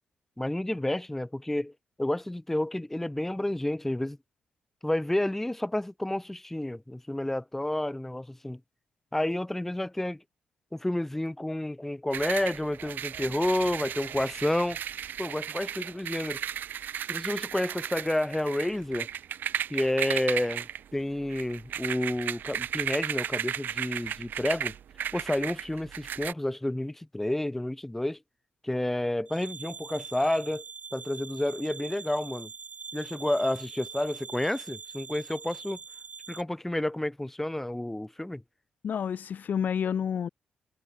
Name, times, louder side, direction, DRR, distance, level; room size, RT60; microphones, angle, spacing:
voice 1, 0.4-1.7 2.0-4.2 4.8-8.6 9.1-10.2 10.7-14.8 15.2-16.4 17.1-19.1 19.7-24.7 25.1-28.2 28.6-30.6 30.9-32.5 32.9-35.8 36.3-38.4, left 1 dB, 10° left, 0.6 m, -30 dB
sound 1, 12.1-26.3, right 9 dB, 70° right, 0.8 m, -35 dB
sound 2, 29.3-36.4, right 5 dB, 50° right, 1.1 m, -43 dB
voice 2, 38.8-40.3, left 8 dB, 65° left, 0.6 m, -29 dB
cardioid pair, 65°, 3 cm